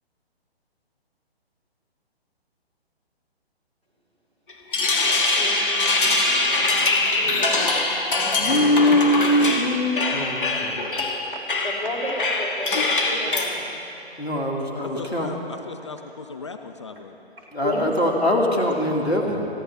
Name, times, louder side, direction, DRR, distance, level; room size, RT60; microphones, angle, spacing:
sound 1, 4.5-13.5, left 3 dB, 55° left, 1.7 m, -23 dB
voice 1, 5.3-7.8 8.8-9.0 11.0-11.1 11.5-13.6 17.6-17.8, equal, 80° right, -2 dB, 4.4 m, -33 dB
voice 2, 8.4-10.8 14.2-15.3 17.5-19.5, left 1 dB, 80° left, 0 dB, 2.5 m, -22 dB
voice 3, 14.8-17.2, left 4 dB, 30° left, 7 dB, 0.5 m, -37 dB
28.5 x 11.0 x 3.5 m, 2.9 s
figure-of-eight pair, 135°, 31 cm